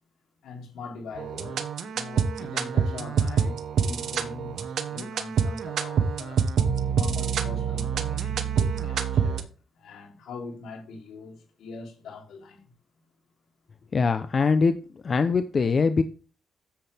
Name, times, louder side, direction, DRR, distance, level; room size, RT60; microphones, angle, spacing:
voice 1, 0.4-6.5 6.9-12.6, left 4 dB, 80° left, 3.5 m, -42 dB
sound 1, 1.1-9.4, right 7 dB, 70° right, 1.2 m, -26 dB
voice 2, 13.9-16.0, left 4 dB, 45° left, 0.7 m, -23 dB
10.0 x 7.7 x 3.5 m
cardioid pair, 85°, 0 cm